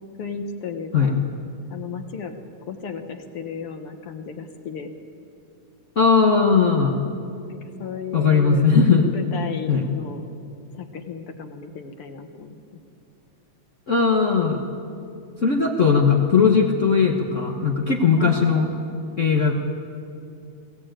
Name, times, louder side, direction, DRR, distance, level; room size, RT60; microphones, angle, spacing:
voice 1, 0.2-1.2 1.7-2.4 2.7-4.9 7.5-8.6 9.0-10.3 10.7-12.6 18.1-18.4, left 6 dB, 55° left, 6 dB, 1.8 m, -34 dB
voice 2, 5.9-7.0 8.1-9.1 9.7-9.8 13.9-14.6 15.4-18.7 19.2-19.5, left 5 dB, 90° left, 1 dB, 0.6 m, -18 dB
22.0 x 16.5 x 9.0 m, 2.5 s
omnidirectional pair, 3.6 m